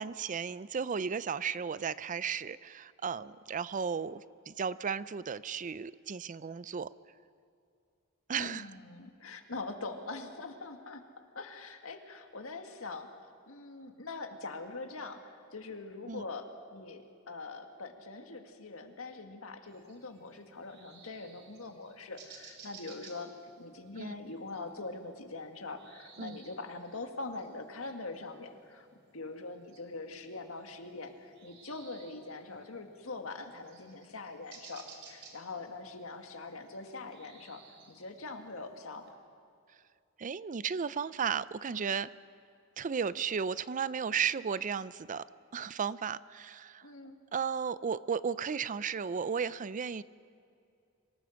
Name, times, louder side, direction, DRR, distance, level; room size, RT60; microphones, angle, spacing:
voice 1, 0.0-6.9 8.3-8.7 16.1-16.2 24.0-24.1 26.2-26.4 40.2-42.1 42.8-45.2 45.5-46.8 47.3-50.0, right 6 dB, 40° right, 17 dB, 0.5 m, -34 dB
voice 2, 8.3-11.0 11.4-13.1 13.5-23.3 23.6-28.9 29.1-37.6 37.9-39.1 46.8-47.2, left 3 dB, 90° left, 5 dB, 1.9 m, -43 dB
sound 1, 19.7-39.1, right 5 dB, 60° right, 3.3 m, -58 dB
26.0 x 18.5 x 6.4 m, 2.4 s
head